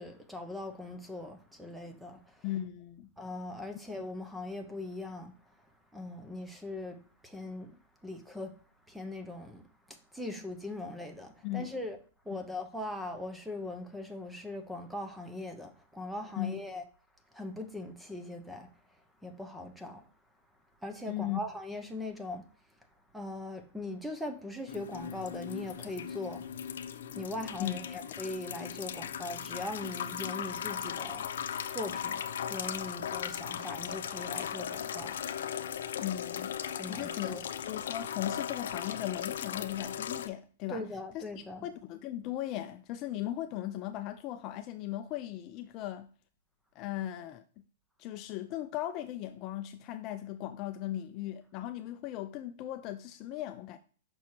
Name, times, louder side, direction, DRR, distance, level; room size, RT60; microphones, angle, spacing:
voice 1, 0.0-2.4 3.2-5.7 5.9-8.5 8.9-12.0 12.2-16.8 17.3-20.0 20.8-22.5 23.1-26.5 27.1-31.3 31.7-32.2 32.5-35.4 36.7-37.4 40.7-41.7, left 2 dB, ahead, 0.7 m, -40 dB
voice 2, 2.4-3.1 11.4-11.7 12.3-12.4 16.4-16.6 21.1-21.4 27.6-27.7 36.0-36.5 36.9-40.8 41.1-46.1 46.8-47.4 48.0-53.8, left 13 dB, 30° left, 0.4 m, -37 dB
sound 1, 24.7-40.3, left 8 dB, 80° left, 0.6 m, -38 dB
6.1 x 6.0 x 2.8 m
supercardioid pair, 160°, 0 cm